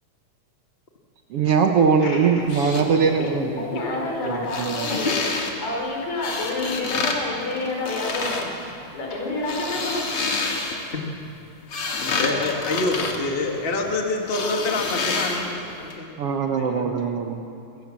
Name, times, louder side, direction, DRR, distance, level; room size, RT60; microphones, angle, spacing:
voice 1, 1.3-3.5 4.3-4.9 16.2-17.4, right 6 dB, 60° right, 5 dB, 1.8 m, -21 dB
voice 2, 2.0-2.3 3.6-8.5 8.9-10.1, left 2 dB, 70° left, -1 dB, 5.7 m, -29 dB
sound 1, 2.4-2.8 4.4-5.5 6.2-7.2 7.5-8.5 9.3-10.9 11.4-13.9 14.3-15.6 15.9-16.0, left 4 dB, 50° left, 2.8 m, -28 dB
voice 3, 12.1-16.1 16.6-16.9, left 2 dB, 20° left, 1 dB, 1.8 m, -27 dB
27.5 x 16.0 x 7.5 m, 2.7 s
omnidirectional pair, 3.3 m